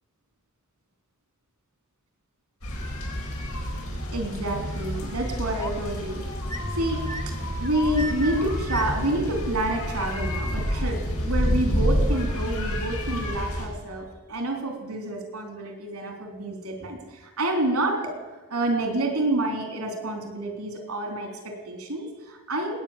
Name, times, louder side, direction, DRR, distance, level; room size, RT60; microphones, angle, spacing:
sound 1, 2.6-13.7, equal, 90° left, 4.5 m, -29 dB
voice 1, 4.1-6.2 6.8-7.0 7.3-18.1 18.5-22.8, right 1 dB, 90° right, 4 dB, 3.7 m, -28 dB
sound 2, 5.2-5.9 6.4-9.2, equal, 15° left, 1.0 m, -36 dB
19.5 x 9.4 x 7.4 m, 1.2 s
head